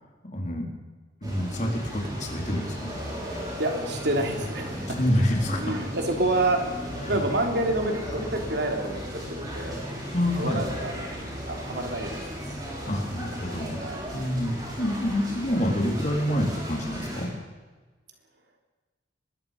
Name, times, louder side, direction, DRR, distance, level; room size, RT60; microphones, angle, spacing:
voice 1, 0.2-0.7 1.2-3.0 5.0-5.6 7.1-7.2 10.1-10.6 12.9-13.8 14.1-17.3, equal, 40° left, 0 dB, 4.2 m, -27 dB
sound 1, 1.2-17.3, equal, 20° right, 6.8 m, -36 dB
voice 2, 3.6-5.0 5.6-9.9 10.4-11.0 11.5-12.6 13.8-14.1, right 1 dB, 60° right, 2 dB, 3.4 m, -28 dB
24.0 x 21.5 x 5.4 m, 1.3 s
head